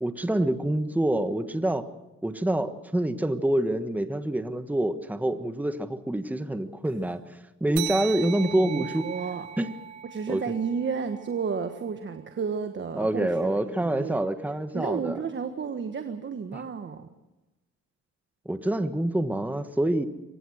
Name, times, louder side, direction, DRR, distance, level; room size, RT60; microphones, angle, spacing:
voice 1, 0.0-1.9 2.2-7.2 7.6-9.0 9.6-9.7 10.3-10.4 12.9-15.2 16.5-16.6 18.4-20.0, right 1 dB, 5° right, 9 dB, 1.4 m, -26 dB
sound 1, 7.8-12.7, right 11 dB, 75° right, 1.8 m, -39 dB
voice 2, 8.1-9.5 10.1-14.2 14.7-17.1, right 6 dB, 40° right, 7 dB, 1.5 m, -32 dB
23.5 x 18.5 x 6.5 m, 1.0 s
cardioid pair, 85°, 29 cm